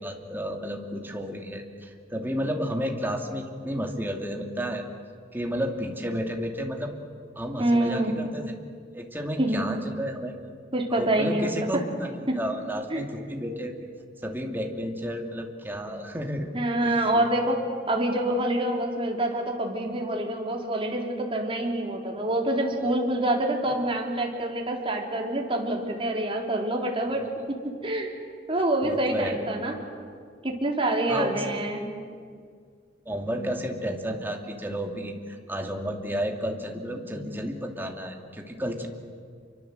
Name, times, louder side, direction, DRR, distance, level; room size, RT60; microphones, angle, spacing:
voice 1, 0.0-4.9 5.3-6.9 7.4-8.5 8.9-10.3 10.9-13.7 14.2-16.5 16.8-17.3 27.1-27.3 28.8-29.4 31.1-31.6 33.1-38.9, equal, 10° right, 2 dB, 2.6 m, -32 dB
voice 2, 7.6-8.1 9.4-9.6 10.7-11.5 12.3-12.4 12.9-13.0 16.5-17.6 17.9-28.1 28.5-29.7 30.4-31.9, right 1 dB, 30° right, 0 dB, 3.9 m, -26 dB
29.0 x 24.5 x 8.0 m, 2.1 s
head